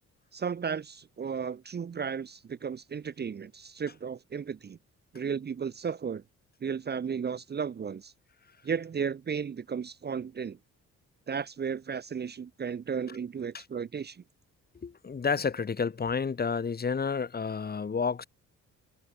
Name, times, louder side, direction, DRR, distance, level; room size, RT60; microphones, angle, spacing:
voice 1, 0.3-4.8 5.1-6.2 6.6-8.1 8.6-10.6 11.3-14.2, right 6 dB, 35° right, 0.8 m, -34 dB
voice 2, 14.8-18.2, left 5 dB, 30° left, 1.6 m, -30 dB
cardioid pair, 90°, 30 cm